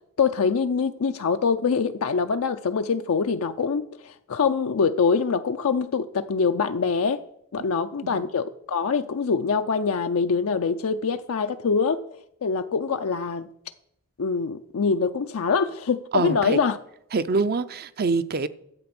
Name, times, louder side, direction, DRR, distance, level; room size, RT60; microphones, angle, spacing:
voice 1, 0.2-7.2 7.5-12.0 12.4-13.5 14.2-16.8, left 5 dB, 80° left, 0.5 m, -24 dB
voice 2, 16.1-16.6 17.1-18.5, right 4 dB, 45° right, 0.6 m, -25 dB
12.0 x 8.0 x 6.0 m
head